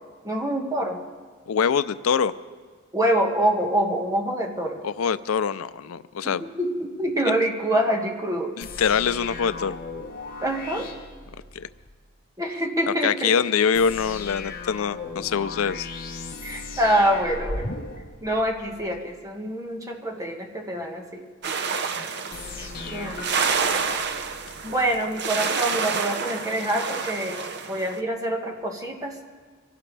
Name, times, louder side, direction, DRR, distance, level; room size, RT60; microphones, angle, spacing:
voice 1, 0.2-1.0 2.9-4.8 6.2-8.6 10.4-10.9 12.4-13.3 16.4-17.7 18.2-21.2 22.6-23.4 24.6-29.2, right 1 dB, 15° right, 1 dB, 1.6 m, -26 dB
voice 2, 1.5-2.3 4.8-6.4 8.6-9.8 11.5-11.7 13.0-15.9, left 6 dB, 85° left, 14 dB, 0.4 m, -24 dB
sound 1, 8.6-11.9 13.7-19.0 22.3-25.0, left 3 dB, 45° left, 1.4 m, -37 dB
sound 2, 21.4-28.0, right 5 dB, 55° right, 0.9 m, -28 dB
24.5 x 16.5 x 3.3 m, 1.5 s
head